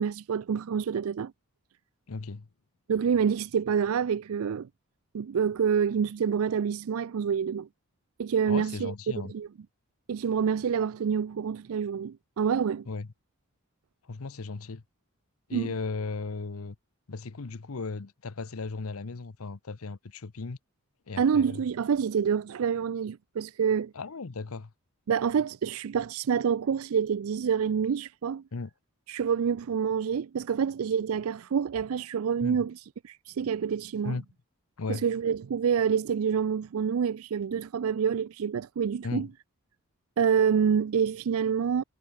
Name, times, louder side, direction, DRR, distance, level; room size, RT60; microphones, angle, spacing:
voice 1, 0.0-1.3 2.9-4.7 5.1-7.7 8.2-8.9 9.2-9.5 10.1-12.9 15.5-15.7 21.2-23.9 25.1-28.4 29.1-34.2 34.9-39.3 40.2-41.8, right 7 dB, 70° right, 0.4 m, -27 dB
voice 2, 2.1-2.5 8.5-9.3 12.9-13.1 14.1-14.8 15.5-16.8 17.1-20.6 21.1-21.6 23.9-24.7 28.5-28.7 32.4-32.7 34.0-34.2 34.8-35.0 39.0-39.3, left 3 dB, 75° left, 0.8 m, -36 dB
head